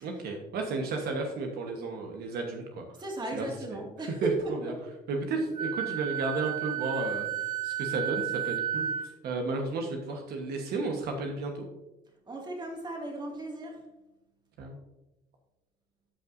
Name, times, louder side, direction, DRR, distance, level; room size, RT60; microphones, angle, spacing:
voice 1, 0.0-2.8 3.3-3.5 4.2-4.3 4.6-4.7 5.1-7.3 7.6-8.9 9.2-11.7 14.6-14.8, right 3 dB, 70° right, 1.2 m, -33 dB
voice 2, 3.0-4.7 12.3-13.9, right 2 dB, 25° right, 2.1 m, -35 dB
Wind instrument woodwind instrument, 5.6-9.1, right 10 dB, 50° right, 1.4 m, -32 dB
12.5 x 5.6 x 2.6 m
cardioid pair, 110°, 17 cm